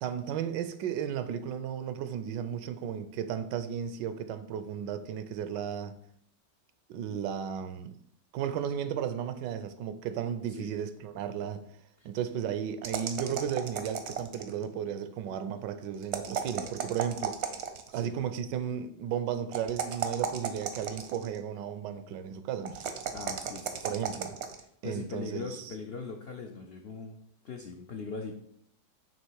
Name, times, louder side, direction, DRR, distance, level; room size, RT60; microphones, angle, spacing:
voice 1, 0.0-6.0 6.9-8.0 8.3-11.7 12.0-17.5 17.9-22.9 23.8-24.4 24.8-25.7, right 8 dB, 85° right, 1.2 m, -34 dB
sound 1, 12.8-14.6 16.0-17.9 19.5-21.4 22.7-24.6, right 7 dB, 60° right, 0.7 m, -35 dB
voice 2, 23.1-23.9 24.8-28.3, left 4 dB, 80° left, 0.5 m, -41 dB
7.4 x 3.1 x 4.6 m
omnidirectional pair, 1.9 m